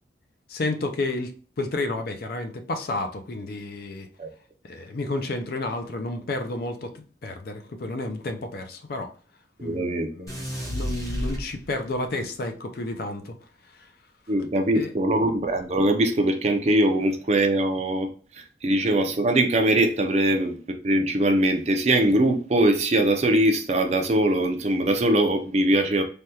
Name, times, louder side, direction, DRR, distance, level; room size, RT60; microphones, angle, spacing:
voice 1, 0.5-4.1 4.6-9.1 9.6-13.3 13.7-13.9 14.7-14.9, left 2 dB, 55° left, 0.4 m, -31 dB
voice 2, 9.6-10.1 14.3-18.1 18.6-20.6 20.8-26.0, right 1 dB, 35° right, 0.4 m, -22 dB
sound 1, 10.3-12.0, equal, 20° left, 0.8 m, -31 dB
3.3 x 2.3 x 2.8 m
head